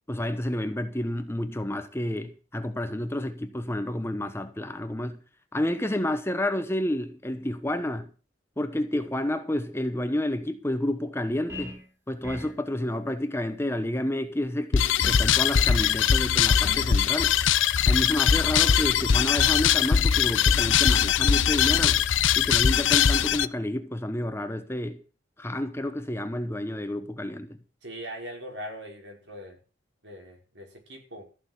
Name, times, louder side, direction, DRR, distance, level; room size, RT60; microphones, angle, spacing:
voice 1, 0.1-5.2 5.5-8.1 8.6-11.8 12.1-17.3 17.9-22.0 22.4-25.0 25.4-27.6, left 1 dB, 15° left, 1.0 m, -30 dB
sound 1, 11.5-11.9 12.2-12.6 15.0-15.3 15.8-16.1 16.6-17.0, left 1 dB, 15° right, 3.2 m, -39 dB
sound 2, 14.7-23.5, left 8 dB, 85° left, 0.7 m, -21 dB
voice 2, 27.8-29.6 30.0-31.3, equal, 65° right, 5.5 m, -41 dB
15.0 x 6.8 x 8.0 m
head